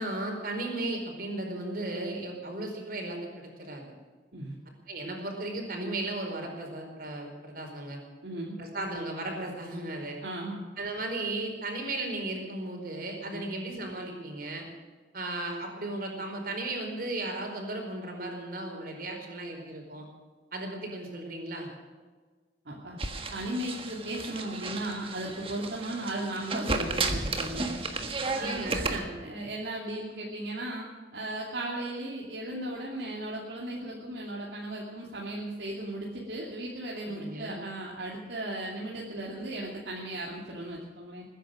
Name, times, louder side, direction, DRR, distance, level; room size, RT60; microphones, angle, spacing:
voice 1, 0.0-3.8 4.9-8.0 8.6-10.2 10.8-14.6 15.1-20.0 20.5-21.7 28.4-29.1 37.0-37.6, right 2 dB, 55° right, 2 dB, 4.6 m, -35 dB
voice 2, 8.2-8.6 10.2-10.6 13.3-13.5 22.6-23.0 23.3-27.8 28.3-28.6 29.2-30.9 31.1-41.2, right 1 dB, 70° right, -3 dB, 2.6 m, -36 dB
sound 1, 23.0-29.0, right 3 dB, 30° right, 1.5 m, -33 dB
21.5 x 10.0 x 6.4 m, 1.4 s
head